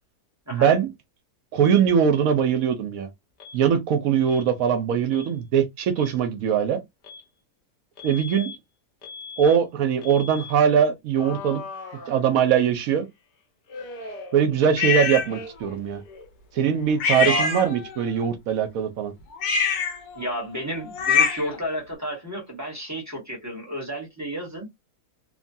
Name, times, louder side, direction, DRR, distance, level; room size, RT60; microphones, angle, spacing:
voice 1, 0.5-0.9 1.5-3.1 3.5-6.8 8.0-8.5 9.4-11.6 12.1-13.1 14.3-16.0 16.5-19.1, right 8 dB, 70° right, 1.0 m, -21 dB
Alarm, 3.4-3.6 4.3-4.5 5.1-5.3 5.8-6.2 7.0-7.3 8.0-8.6 9.0-9.6 10.0-10.5 11.1-12.7 13.7-14.9 15.2-15.8 16.0-17.7, left 4 dB, 55° left, 0.5 m, -41 dB
sound 1, 14.8-15.3 17.0-18.1 19.3-21.6, left 6 dB, 85° left, 1.3 m, -24 dB
voice 2, 17.1-17.5 20.1-24.7, equal, 15° right, 0.9 m, -31 dB
3.0 x 2.2 x 2.6 m
omnidirectional pair, 1.6 m